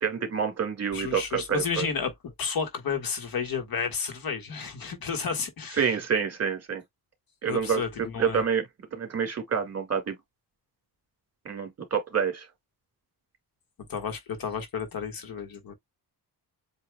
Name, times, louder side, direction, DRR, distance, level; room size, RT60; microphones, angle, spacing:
voice 1, 0.0-1.9 5.8-6.8 7.4-7.8 8.2-8.6 9.0-10.2 11.5-12.5, right 7 dB, 40° right, 2.0 m, -27 dB
voice 2, 0.9-5.8 7.5-8.4 13.9-15.7, left 6 dB, 60° left, 1.5 m, -32 dB
8.1 x 2.7 x 2.2 m
wide cardioid pair, 140°, 40 cm